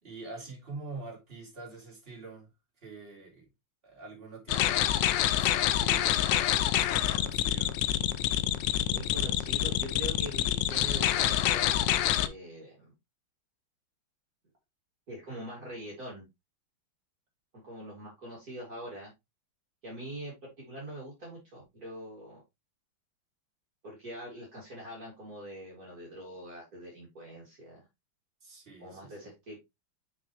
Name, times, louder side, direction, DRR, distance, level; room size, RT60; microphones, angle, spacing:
voice 1, 0.0-2.5 2.8-3.5 3.8-7.8 28.4-29.3, right 3 dB, 25° right, 3.4 m, -46 dB
sound 1, 4.5-12.3, left 12 dB, 75° left, 1.2 m, -27 dB
voice 2, 8.9-11.9 12.2-12.8 15.1-16.3 17.5-19.1 19.8-22.4 23.8-27.9 28.8-29.6, right 1 dB, 45° right, 3.0 m, -43 dB
6.1 x 6.1 x 3.0 m
omnidirectional pair, 2.2 m